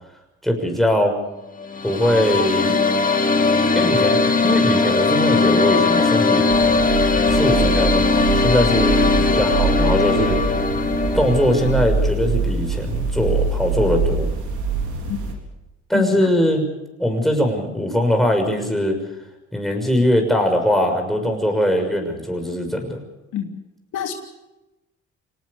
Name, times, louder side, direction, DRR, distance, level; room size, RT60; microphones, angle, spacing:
voice 1, 0.4-1.2 1.8-2.7 3.7-6.4 7.3-10.4 11.1-14.3 15.9-16.7 17.0-19.0 19.5-23.0, left 1 dB, ahead, 3 dB, 6.3 m, -21 dB
sound 1, 1.6-11.8, left 3 dB, 25° left, 2.7 m, -19 dB
sound 2, 6.5-15.3, right 3 dB, 80° right, 4.2 m, -24 dB
voice 2, 15.9-16.3 23.3-23.5 23.9-24.1, left 9 dB, 80° left, 3 dB, 3.0 m, -26 dB
25.5 x 19.0 x 6.9 m, 0.97 s
cardioid pair, 90°, 30 cm